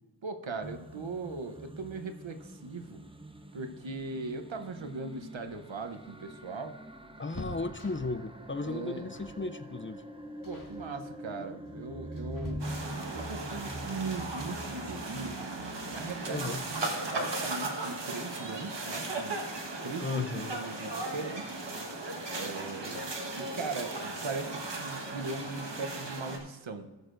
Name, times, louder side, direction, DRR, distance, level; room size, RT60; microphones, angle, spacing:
voice 1, 0.2-3.0 3.5-6.8 8.6-9.1 10.4-12.6 13.1-19.4 19.8-21.6 22.3-26.9, right 3 dB, 85° right, 7 dB, 0.9 m, -39 dB
sound 1, 0.6-17.0, right 1 dB, 10° right, 0.7 m, -45 dB
sound 2, 5.6-8.3 9.1-9.5 9.8-10.0 10.4-10.8 11.6-13.1 14.9-15.0 15.3-15.4 16.6-17.0 17.4-17.5 17.8-18.0, left 1 dB, 45° left, 2.0 m, -46 dB
voice 2, 7.2-10.0 16.3-16.6 20.0-20.5, left 3 dB, 25° left, 10 dB, 0.5 m, -35 dB
sound 3, 12.6-26.4, right 2 dB, 65° right, 1.4 m, -37 dB
19.5 x 6.5 x 2.6 m, 1.2 s
wide cardioid pair, 45°, 45 cm